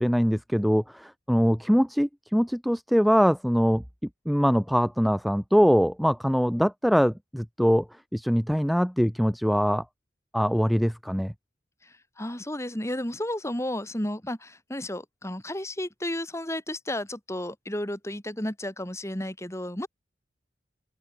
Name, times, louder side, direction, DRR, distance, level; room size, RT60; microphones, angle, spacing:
voice 1, 0.0-3.8 4.3-7.9 8.1-9.8 10.3-11.3, equal, ahead, 0.8 m, -23 dB
voice 2, 11.8-19.9, left 1 dB, 15° left, 3.2 m, -33 dB
open air
head